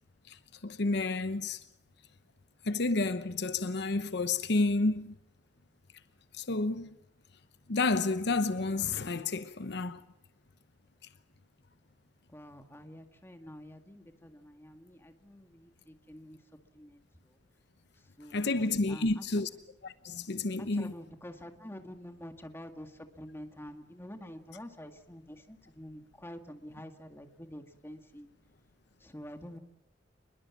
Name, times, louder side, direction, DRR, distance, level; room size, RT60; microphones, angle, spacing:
voice 1, 0.6-1.6 2.6-5.1 6.4-6.9 7.7-10.0 18.3-19.5 19.8-20.9, left 3 dB, 65° left, 0.9 m, -30 dB
voice 2, 12.3-16.4 16.7-17.4 18.2-19.4 20.6-28.3 29.0-29.6, equal, 15° left, 2.0 m, -48 dB
26.0 x 22.0 x 7.4 m
head